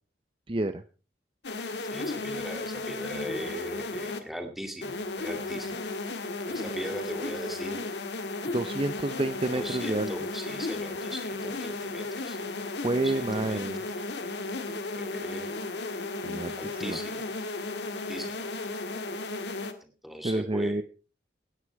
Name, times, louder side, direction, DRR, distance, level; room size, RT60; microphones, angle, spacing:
voice 1, 0.5-0.8 1.7-1.8 8.5-10.1 12.8-13.8 16.2-17.0 20.2-20.8, right 2 dB, 30° right, 11 dB, 0.6 m, -29 dB
sound 1, 1.4-4.2 4.8-19.7, left 3 dB, 65° left, 1.7 m, -34 dB
voice 2, 1.9-5.8 6.5-7.8 9.5-12.5 13.0-13.9 14.9-15.5 16.6-17.3 18.1-18.5 19.8-20.8, equal, ahead, 4 dB, 2.3 m, -39 dB
17.5 x 9.8 x 4.6 m, 0.35 s
head